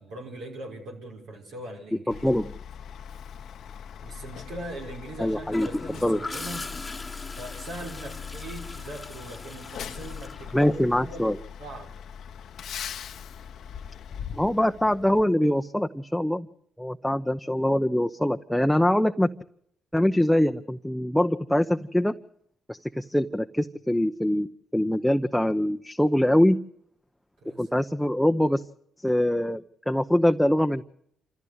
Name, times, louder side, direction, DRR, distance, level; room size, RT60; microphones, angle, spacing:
voice 1, 0.0-2.3 4.0-6.7 7.4-11.3 11.6-11.9 27.4-27.7, right 1 dB, 75° right, 0 dB, 5.6 m, -40 dB
Truck, 2.1-15.2, left 8 dB, 65° left, 0.9 m, -41 dB
voice 2, 2.1-2.5 5.2-5.7 6.0-6.2 10.5-11.4 14.3-16.5 16.8-19.3 19.9-22.2 22.7-26.6 27.6-28.6 29.0-30.8, left 1 dB, 5° left, 6 dB, 0.8 m, -23 dB
Gurgling / Toilet flush, 5.5-11.2 13.2-13.5, left 3 dB, 25° left, 1.2 m, -40 dB
27.0 x 14.5 x 8.1 m, 0.71 s
hypercardioid pair, 50°, 0 cm